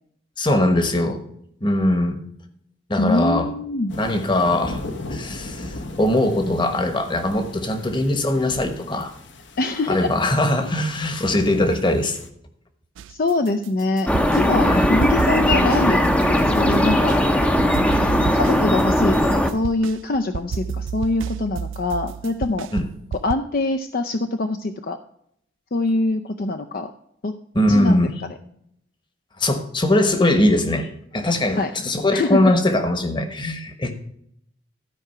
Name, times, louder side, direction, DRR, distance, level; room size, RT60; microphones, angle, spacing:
voice 1, 0.4-1.2 1.6-2.2 2.9-3.5 3.9-4.8 5.1-9.1 9.9-12.2 14.7-14.9 22.7-22.8 27.5-28.1 29.4-30.9 31.1-33.9, left 1 dB, 25° left, 8 dB, 1.1 m, -21 dB
voice 2, 3.0-3.9 9.6-10.1 13.1-14.1 14.3-17.2 18.3-22.7 23.2-25.0 25.7-26.9 27.2-27.3 27.7-28.1 31.6-31.7 32.1-32.5, left 2 dB, 50° left, 6 dB, 0.5 m, -24 dB
sound 1, 3.9-12.3, left 2 dB, 70° left, 1.0 m, -37 dB
sound 2, 13.0-14.5 14.8-17.2 17.6-23.3, right 6 dB, 80° right, 0.3 m, -31 dB
sound 3, 14.1-19.5, equal, 5° left, 0.6 m, -18 dB
13.0 x 4.9 x 5.7 m, 0.71 s
head